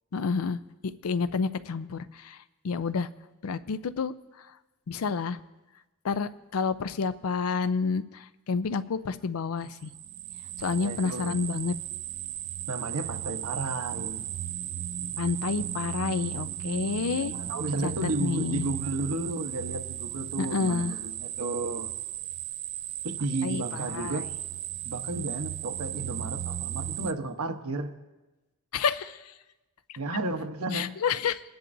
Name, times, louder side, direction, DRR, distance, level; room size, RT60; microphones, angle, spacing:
voice 1, 0.1-0.6 1.0-2.4 2.6-3.1 3.4-4.1 4.9-5.4 6.0-9.9 10.6-11.7 15.2-17.3 17.8-17.9 18.2-18.7 20.4-21.0 23.4-23.6 23.9-24.2 28.7-29.2 30.7-31.4, left 5 dB, 75° left, 14 dB, 0.5 m, -29 dB
sound 1, 9.8-27.1, right 11 dB, 60° right, 0.4 m, -36 dB
voice 2, 10.7-11.4 12.7-14.3 17.1-21.9 23.0-24.3 24.8-27.9 30.0-30.9, right 2 dB, 80° right, 6 dB, 1.0 m, -33 dB
21.0 x 10.5 x 2.6 m, 1.1 s
head